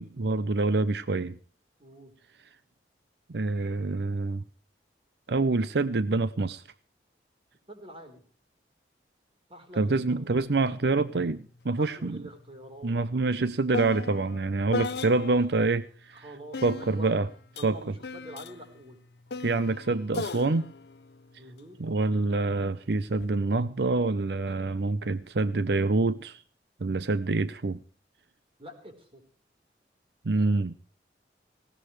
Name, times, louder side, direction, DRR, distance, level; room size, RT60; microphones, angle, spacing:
voice 1, 0.0-1.4 3.3-4.4 5.3-6.6 9.8-12.2 12.8-16.2 16.6-17.3 17.6-17.9 19.4-20.7 21.8-26.4 26.8-27.8 30.2-30.7, right 3 dB, 75° right, 16 dB, 0.7 m, -26 dB
voice 2, 1.8-2.1 7.7-8.2 9.5-10.3 11.8-12.9 16.1-17.2 17.6-19.0 21.4-21.8 28.6-29.2, right 1 dB, 30° right, 6 dB, 4.0 m, -45 dB
sound 1, 10.4-10.5 10.8-15.6 16.5-22.1 22.9-23.3, left 3 dB, 70° left, 0.6 m, -38 dB
19.5 x 17.5 x 3.2 m, 0.40 s
head